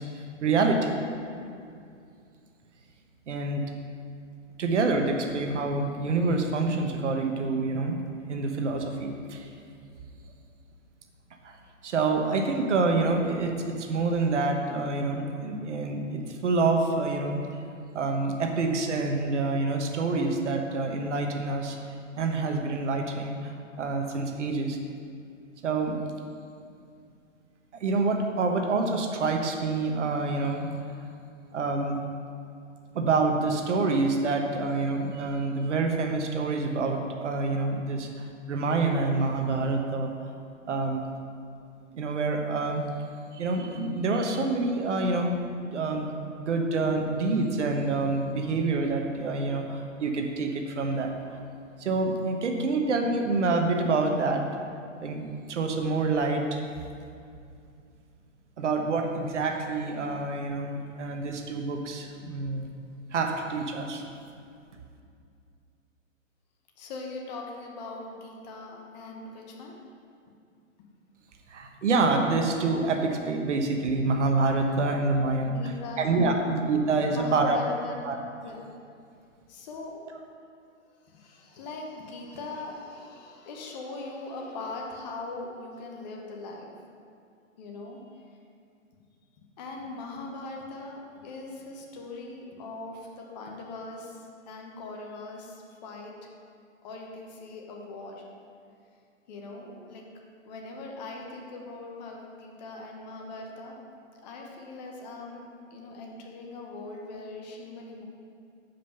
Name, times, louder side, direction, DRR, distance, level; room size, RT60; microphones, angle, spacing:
voice 1, 0.1-1.0 3.3-3.6 4.6-8.0 8.3-9.5 11.4-11.6 11.8-17.4 17.9-21.8 22.1-24.8 25.6-26.0 27.7-30.7 31.5-32.0 32.9-40.1 40.7-41.0 41.9-42.9 43.3-45.4 45.7-51.4 51.8-54.4 55.0-56.6 58.6-62.7 63.1-64.0 71.5-75.6 76.0-77.6 78.0-78.2, right 3 dB, 60° right, 4 dB, 1.0 m, -27 dB
voice 2, 66.8-69.8 74.8-74.9 75.4-76.5 77.0-78.2 78.4-78.6 79.5-80.0 81.0-86.7 87.6-88.0 89.4-96.1 96.8-98.2 99.3-100.0 100.4-103.7 104.2-108.1, left 3 dB, 30° left, 0 dB, 1.0 m, -40 dB
7.3 x 5.3 x 5.7 m, 2.4 s
hypercardioid pair, 140°, 40 cm